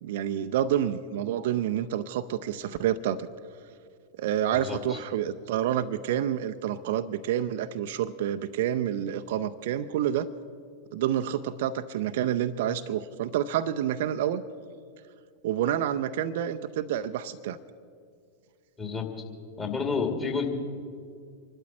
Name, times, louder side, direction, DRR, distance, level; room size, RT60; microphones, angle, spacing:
voice 1, 0.0-3.3 4.2-10.3 10.9-14.4 15.4-17.6, right 10 dB, 55° right, 11 dB, 0.5 m, -28 dB
voice 2, 4.5-5.0 18.8-19.2 19.6-20.5, left 5 dB, 20° left, 3 dB, 2.3 m, -30 dB
26.0 x 12.0 x 4.3 m, 2.3 s
figure-of-eight pair, 90°, 0 cm